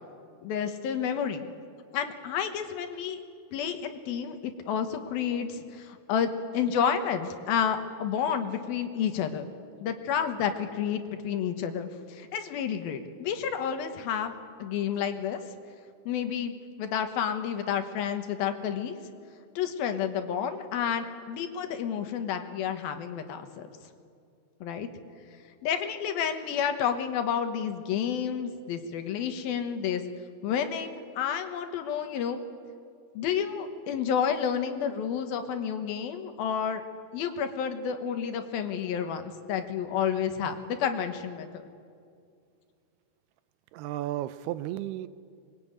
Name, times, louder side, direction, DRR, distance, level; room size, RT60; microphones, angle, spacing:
voice 1, 0.4-1.4 1.9-3.2 3.5-9.5 9.8-15.4 16.1-16.5 16.8-19.0 19.6-23.7 24.6-24.9 25.6-30.0 30.4-32.4 33.1-36.8 37.1-41.5, left 8 dB, 70° left, 7 dB, 3.0 m, -30 dB
voice 2, 43.7-45.1, right 14 dB, 85° right, 14 dB, 2.8 m, -33 dB
25.5 x 21.5 x 9.0 m, 2.4 s
omnidirectional pair, 4.5 m